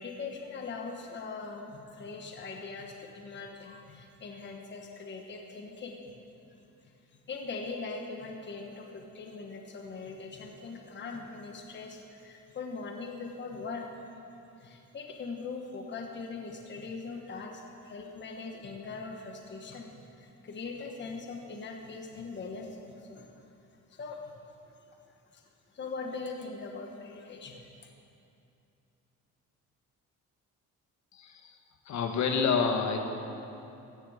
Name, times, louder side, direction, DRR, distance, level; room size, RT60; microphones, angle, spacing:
voice 1, 0.0-6.0 6.8-14.0 14.6-23.5 23.9-24.3 25.3-25.4 25.7-27.9, left 4 dB, 35° left, 2 dB, 1.3 m, -41 dB
voice 2, 31.1-31.6 31.8-33.0, left 5 dB, 65° left, 4 dB, 1.5 m, -28 dB
16.5 x 13.5 x 5.0 m, 2.8 s
cardioid pair, 145°, 31 cm